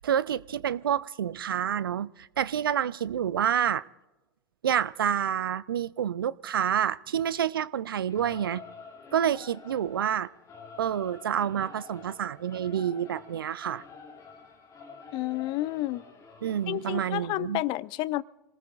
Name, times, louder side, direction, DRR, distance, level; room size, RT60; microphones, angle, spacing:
voice 1, 0.0-3.8 4.6-8.6 9.1-10.3 10.8-13.8 16.4-17.6, right 9 dB, 75° right, 0.5 m, -28 dB
Singing / Musical instrument, 8.1-17.0, left 5 dB, 25° left, 2.4 m, -48 dB
voice 2, 15.1-16.0 16.7-18.2, left 17 dB, 40° left, 0.5 m, -30 dB
28.5 x 19.5 x 2.4 m
figure-of-eight pair, 90°, 12 cm